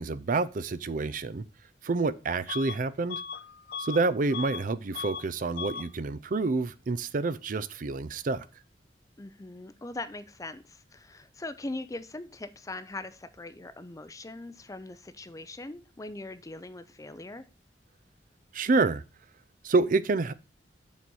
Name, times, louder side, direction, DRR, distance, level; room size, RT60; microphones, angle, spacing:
voice 1, 0.0-1.4 1.8-3.2 3.8-8.4 18.5-19.0 19.6-20.3, right 3 dB, 50° right, 0.5 m, -28 dB
Bus / Alarm, 2.5-2.8 3.1-4.7 4.9-5.3 5.5-5.9, left 5 dB, 60° left, 0.6 m, -38 dB
voice 2, 9.2-17.4, left 2 dB, 20° left, 0.5 m, -41 dB
7.2 x 4.2 x 6.2 m
head